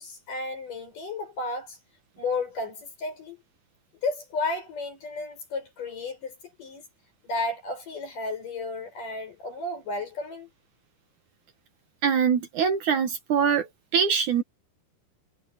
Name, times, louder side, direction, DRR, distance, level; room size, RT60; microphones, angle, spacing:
voice 1, 0.0-1.8 2.2-3.4 4.0-6.8 7.2-10.5, left 3 dB, 60° left, 9.2 m, -33 dB
voice 2, 12.0-13.7 13.9-14.4, right 7 dB, 60° right, 2.6 m, -23 dB
omnidirectional pair, 4.2 m